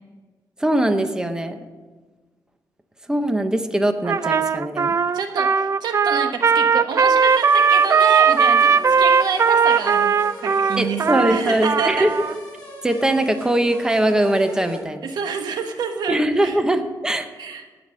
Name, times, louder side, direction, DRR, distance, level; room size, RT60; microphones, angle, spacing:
voice 1, 0.6-1.7 3.1-5.0 10.8-12.1 12.8-15.1 16.1-17.3, right 1 dB, 10° right, 8 dB, 0.9 m, -21 dB
Trumpet, 4.0-12.3, right 6 dB, 40° right, 0.4 m, -18 dB
voice 2, 5.1-12.1 15.0-16.6 17.4-17.6, right 6 dB, 80° right, 6 dB, 1.2 m, -28 dB
sound 1, 7.2-14.8, left 1 dB, 20° left, 4.7 m, -38 dB
17.0 x 5.9 x 6.4 m, 1.3 s
cardioid pair, 115°, 7 cm